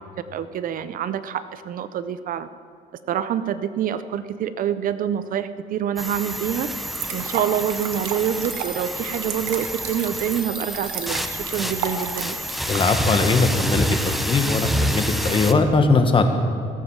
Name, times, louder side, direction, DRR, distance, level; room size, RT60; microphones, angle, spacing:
voice 1, 0.3-2.5 3.1-6.7 7.1-12.4, right 9 dB, 55° right, 13 dB, 0.5 m, -26 dB
sound 1, 6.0-15.5, equal, ahead, 0.7 m, -28 dB
sound 2, 6.8-13.0, right 8 dB, 85° right, 1.2 m, -34 dB
voice 2, 12.7-16.3, left 3 dB, 30° left, 6 dB, 1.4 m, -20 dB
16.5 x 7.3 x 7.3 m, 2.2 s
cardioid pair, 110°, 17 cm